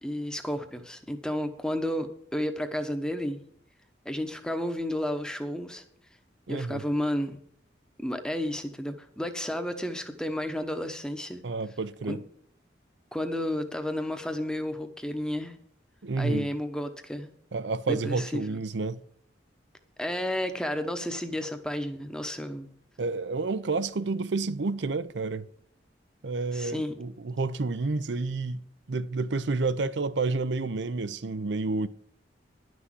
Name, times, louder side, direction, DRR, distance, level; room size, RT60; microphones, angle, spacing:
voice 1, 0.0-3.5 4.0-5.8 6.5-7.4 8.0-11.4 12.1-12.2 13.1-15.6 16.2-17.3 17.9-18.6 20.0-22.7 26.5-27.0, left 1 dB, 5° left, 0.9 m, -32 dB
voice 2, 6.5-6.8 11.4-12.2 16.0-16.5 17.5-19.0 23.0-25.5 26.2-28.6 28.9-31.9, right 3 dB, 70° right, 0.6 m, -30 dB
11.0 x 6.2 x 7.5 m
head